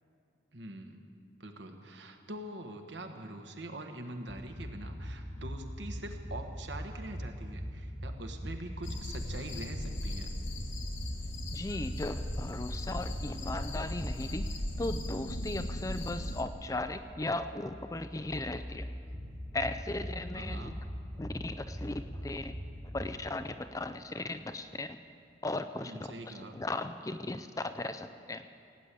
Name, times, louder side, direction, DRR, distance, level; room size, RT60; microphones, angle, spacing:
voice 1, 0.5-1.0 1.4-10.3 20.3-20.8 25.8-26.6, right 1 dB, 65° right, 4 dB, 1.3 m, -44 dB
sound 1, 4.3-23.2, equal, 20° right, 1.4 m, -42 dB
sound 2, 8.8-16.4, left 1 dB, 80° left, 1.3 m, -38 dB
voice 2, 11.5-14.5 14.8-18.9 19.5-20.8 21.2-22.6 22.9-25.0 25.4-25.9 26.3-28.4, left 2 dB, 15° left, 10 dB, 0.4 m, -37 dB
17.5 x 9.0 x 8.4 m, 2.5 s
head